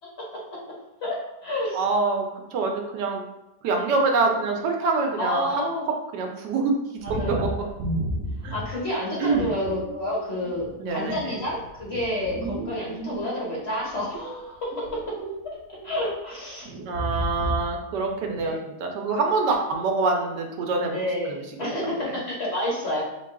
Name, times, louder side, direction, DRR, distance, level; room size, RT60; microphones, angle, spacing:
voice 1, 1.0-1.8 5.2-5.9 7.0-7.7 8.5-15.0 15.4-15.6 15.8-16.7 18.2-18.6 20.9-23.0, left 1 dB, 45° left, -4 dB, 1.2 m, -29 dB
voice 2, 1.7-2.3 2.5-3.2 3.6-5.7 6.1-6.7 7.1-7.5 8.4-8.6 9.2-9.5 10.8-11.3 16.9-18.6 18.8-21.0 21.3-22.1, right 3 dB, 90° right, 2 dB, 1.3 m, -25 dB
sound 1, 7.0-8.9 9.3-10.0 10.4-13.5 13.9-15.5 15.7-16.1 16.6-17.8 18.1-18.5, right 1 dB, 60° right, 0.9 m, -33 dB
4.5 x 2.3 x 3.6 m, 0.96 s
omnidirectional pair, 1.8 m